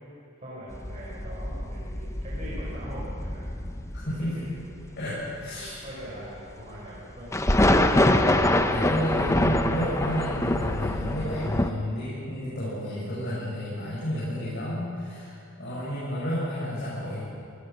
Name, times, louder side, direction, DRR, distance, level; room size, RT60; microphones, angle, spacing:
voice 1, 0.4-3.5 4.0-5.0 5.4-7.4 15.6-15.9, equal, 35° right, -7 dB, 5.3 m, -42 dB
sound 1, 0.7-4.9 5.4-5.5 6.4-6.5 7.0-7.1 7.3-11.7, left 1 dB, 15° left, 0.9 m, -25 dB
voice 2, 3.9-4.4 4.9-5.8 8.7-17.2, equal, 55° left, -9 dB, 7.9 m, -31 dB
26.5 x 20.0 x 6.2 m, 2.5 s
head